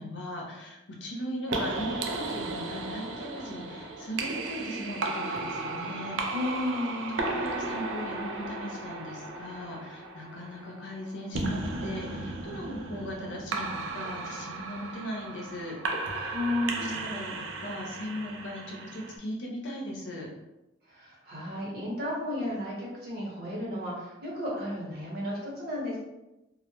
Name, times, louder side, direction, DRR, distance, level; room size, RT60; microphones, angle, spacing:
voice 1, 0.0-6.2 7.1-15.8 16.1-16.4 16.7-20.3, equal, 80° left, -1 dB, 0.6 m, -38 dB
sound 1, 1.5-19.2, right 3 dB, 85° right, 0.3 m, -35 dB
voice 2, 6.3-7.2 16.3-17.2 20.9-26.0, left 1 dB, 55° right, -6 dB, 0.9 m, -33 dB
2.1 x 2.0 x 2.9 m, 0.96 s
head